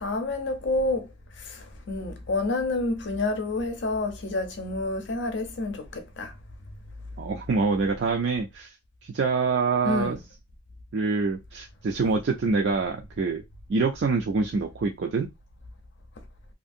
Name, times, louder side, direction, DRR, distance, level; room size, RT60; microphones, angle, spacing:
voice 1, 0.0-1.0 1.9-5.8 6.2-6.3 9.8-10.2, left 2 dB, 65° left, 0.6 m, -28 dB
voice 2, 7.2-8.7 9.0-10.2 10.9-13.4 13.7-15.3, right 4 dB, 55° right, 0.3 m, -25 dB
2.6 x 2.5 x 2.6 m
head